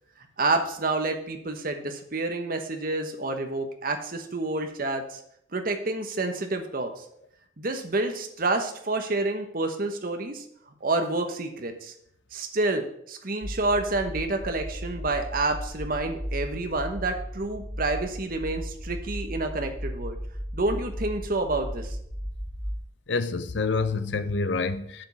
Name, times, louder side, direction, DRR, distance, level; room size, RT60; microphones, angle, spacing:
voice 1, 0.4-5.2 5.5-7.0 7.6-10.4 10.8-11.9 12.3-20.2 20.5-22.0, right 2 dB, 45° right, 1.1 m, -28 dB
sound 1, 13.4-22.8, equal, 15° right, 1.7 m, -36 dB
voice 2, 23.1-25.1, left 4 dB, 65° left, 0.6 m, -27 dB
7.4 x 5.1 x 7.1 m
head